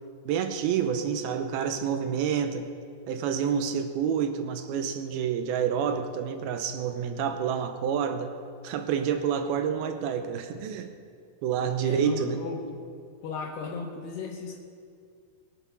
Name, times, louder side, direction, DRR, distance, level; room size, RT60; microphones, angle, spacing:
voice 1, 0.3-2.7 3.1-8.3 8.6-10.9 11.4-12.4, right 7 dB, 80° right, 7 dB, 2.4 m, -28 dB
voice 2, 11.8-12.6 13.2-14.6, left 5 dB, 75° left, 0 dB, 3.0 m, -35 dB
22.5 x 8.3 x 6.1 m, 2.2 s
omnidirectional pair, 4.9 m